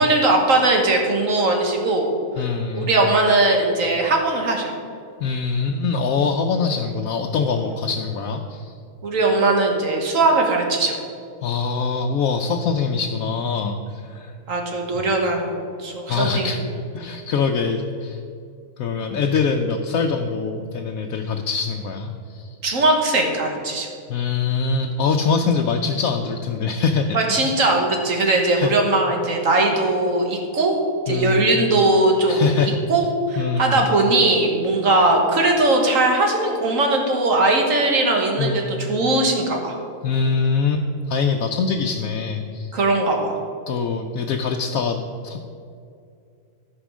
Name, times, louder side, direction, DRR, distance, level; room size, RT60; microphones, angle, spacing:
voice 1, 0.0-2.1 2.7-4.7 7.7-7.8 9.0-11.0 14.5-16.6 22.6-23.9 27.1-30.8 31.1-39.8 42.7-43.4, right 2 dB, 70° right, 1 dB, 1.8 m, -19 dB
voice 2, 2.4-2.9 5.2-8.7 11.4-14.3 16.1-16.6 16.9-18.2 18.8-22.5 24.1-27.5 28.6-28.7 31.1-31.6 32.3-32.8 33.4-33.9 38.4-38.8 40.0-42.8 43.7-45.4, left 5 dB, 80° left, 2 dB, 1.1 m, -23 dB
13.5 x 5.2 x 6.1 m, 2.4 s
omnidirectional pair, 1.4 m